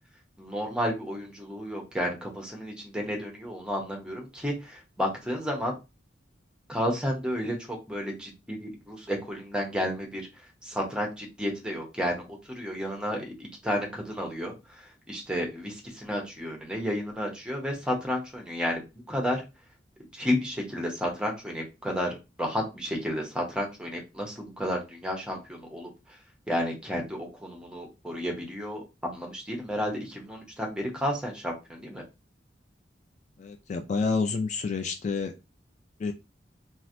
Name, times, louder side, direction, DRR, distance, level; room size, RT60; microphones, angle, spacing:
voice 1, 0.4-5.8 6.7-10.3 10.6-13.3 13.6-19.4 20.1-25.9 26.5-32.0, equal, 5° right, 1 dB, 0.7 m, -32 dB
voice 2, 33.4-35.3 36.0-36.1, left 4 dB, 40° left, 6 dB, 0.3 m, -29 dB
3.1 x 2.4 x 2.5 m, 0.27 s
head